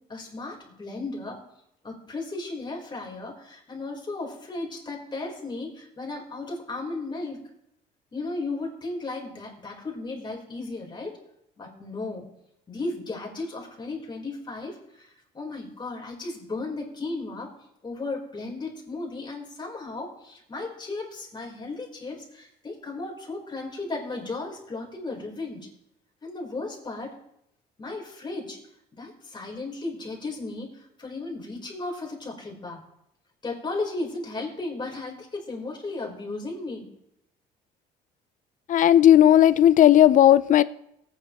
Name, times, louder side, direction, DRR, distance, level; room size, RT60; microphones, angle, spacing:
voice 1, 0.1-1.4 1.8-7.4 8.1-11.2 11.6-12.3 12.7-17.5 17.8-25.7 26.2-27.2 27.8-28.6 28.9-32.8 33.4-36.9, left 3 dB, 25° left, 0 dB, 3.8 m, -35 dB
voice 2, 38.7-40.6, left 11 dB, 50° left, 17 dB, 0.5 m, -15 dB
18.5 x 9.4 x 3.0 m, 0.78 s
cardioid pair, 110°, 17 cm